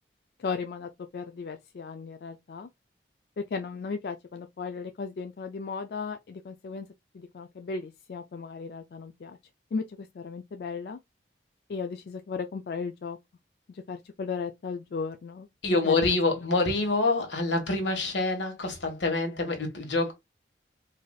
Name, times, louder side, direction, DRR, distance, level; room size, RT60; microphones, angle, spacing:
voice 1, 0.4-2.7 3.5-6.9 7.1-9.4 9.7-11.0 11.7-13.2 13.7-15.5 15.8-16.1, left 5 dB, 60° left, 0.3 m, -36 dB
voice 2, 15.6-20.1, left 3 dB, 80° left, 1.4 m, -26 dB
4.7 x 2.6 x 2.3 m
head